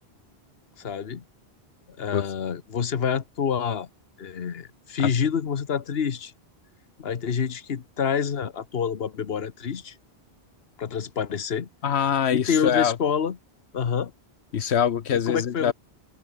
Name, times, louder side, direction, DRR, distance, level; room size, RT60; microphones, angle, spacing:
voice 1, 0.8-1.2 2.0-3.9 4.2-6.3 7.0-9.9 10.8-11.7 12.3-13.4 13.7-14.1 15.3-15.7, left 7 dB, 70° left, 1.4 m, -27 dB
voice 2, 11.8-13.0 14.5-15.7, left 8 dB, 85° left, 1.2 m, -24 dB
open air
omnidirectional pair, 1.1 m